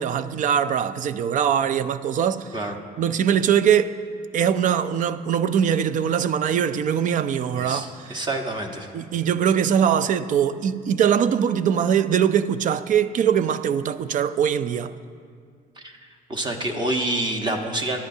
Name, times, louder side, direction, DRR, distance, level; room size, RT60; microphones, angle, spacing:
voice 1, 0.0-2.5 3.0-4.0 4.3-8.2 8.9-14.9, right 8 dB, 50° right, 0.5 m, -22 dB
voice 2, 7.5-8.9 15.8-15.9 16.3-18.0, right 1 dB, 25° right, 1.2 m, -27 dB
17.5 x 10.5 x 2.8 m
cardioid pair, 110°, 17 cm